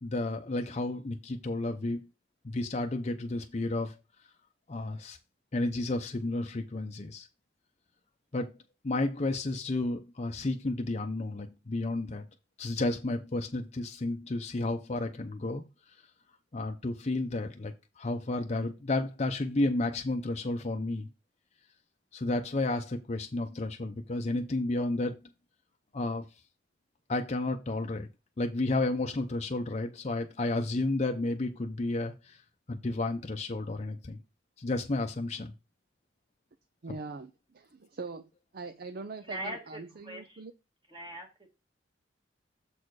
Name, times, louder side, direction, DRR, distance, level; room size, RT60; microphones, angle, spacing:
voice 1, 0.0-2.1 2.4-3.9 4.7-5.2 5.5-7.3 8.3-8.5 8.8-12.3 12.6-15.6 16.5-21.1 22.1-25.2 25.9-26.3 27.1-28.1 28.4-32.4 32.7-34.2 34.6-35.5, left 2 dB, 35° left, 0.6 m, -32 dB
voice 2, 36.8-40.5, right 3 dB, 55° right, 0.5 m, -42 dB
voice 3, 39.2-40.4 40.9-41.5, right 1 dB, 25° right, 1.7 m, -41 dB
7.2 x 4.4 x 4.7 m
head